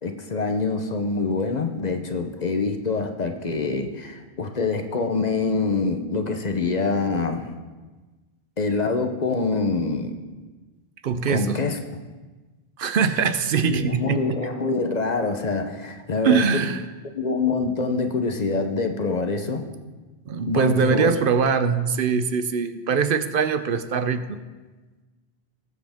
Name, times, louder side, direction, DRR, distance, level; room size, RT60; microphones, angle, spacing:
voice 1, 0.0-7.5 8.6-10.2 11.3-11.8 13.7-16.6 17.1-19.6 20.5-21.1, left 4 dB, 45° left, 6 dB, 0.9 m, -25 dB
voice 2, 11.0-11.6 12.8-14.4 16.2-16.8 20.3-24.4, right 6 dB, 60° right, 11 dB, 0.8 m, -22 dB
19.0 x 7.7 x 3.6 m, 1.3 s
omnidirectional pair, 1.1 m